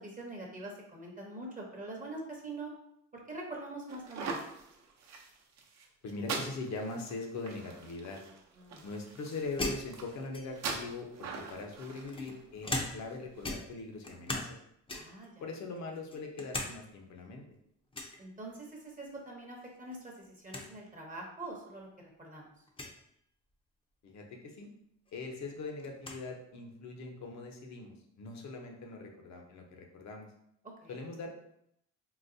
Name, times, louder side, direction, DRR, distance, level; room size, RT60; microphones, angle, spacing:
voice 1, 0.0-2.7 3.1-4.4 8.5-8.8 14.9-15.5 18.2-21.9 22.2-22.5 30.6-31.0, right 2 dB, 25° right, -1 dB, 0.7 m, -44 dB
sound 1, 3.9-13.4, right 4 dB, 60° right, 0.6 m, -43 dB
voice 2, 6.0-8.2 8.8-14.5 15.4-17.4 24.0-24.7 25.1-30.3 30.9-31.3, left 3 dB, 65° left, 2 dB, 0.7 m, -41 dB
sound 2, 9.6-10.8 11.6-13.2 13.4-14.6 14.9-15.3 15.8-16.7 17.1-17.2 17.9-18.2 19.6-20.0 20.2-20.3 20.5-20.7 21.5-21.6 22.7-23.0 24.6-24.7 25.1-26.2, left 2 dB, 20° left, 0.5 m, -39 dB
3.9 x 2.2 x 2.6 m, 0.74 s
cardioid pair, 90°, 30 cm